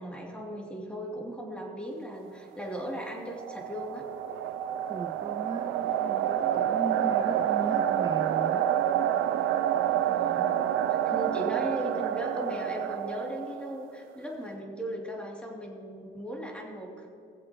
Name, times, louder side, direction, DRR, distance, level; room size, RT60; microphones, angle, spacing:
voice 1, 0.0-4.1 10.0-17.1, equal, 5° left, -2 dB, 2.9 m, -37 dB
sound 1, 3.0-13.9, right 10 dB, 90° right, 0.5 m, -28 dB
voice 2, 4.9-8.7, right 4 dB, 20° right, 9 dB, 0.4 m, -37 dB
20.5 x 7.6 x 3.1 m, 2.4 s
cardioid pair, 90°, 20 cm